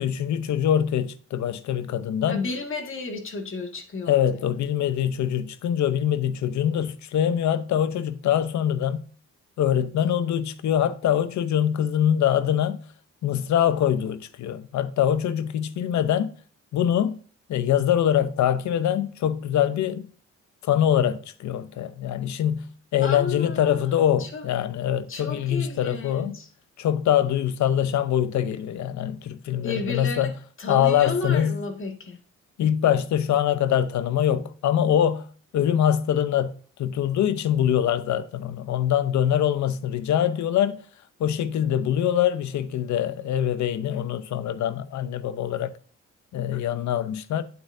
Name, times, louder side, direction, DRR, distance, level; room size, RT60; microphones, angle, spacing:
voice 1, 0.0-2.4 4.1-9.0 9.6-12.8 13.2-16.3 16.7-17.2 17.5-20.1 20.6-26.4 26.8-30.3 30.7-31.6 32.6-35.3 35.5-40.8 41.2-45.7 46.3-47.4, left 10 dB, 70° left, 0.8 m, -24 dB
voice 2, 2.3-4.2 23.0-23.9 24.2-24.4 25.1-26.5 29.6-30.3 30.6-32.2, left 3 dB, 45° left, 2.0 m, -32 dB
8.6 x 8.0 x 2.7 m
cardioid pair, 90°, 30 cm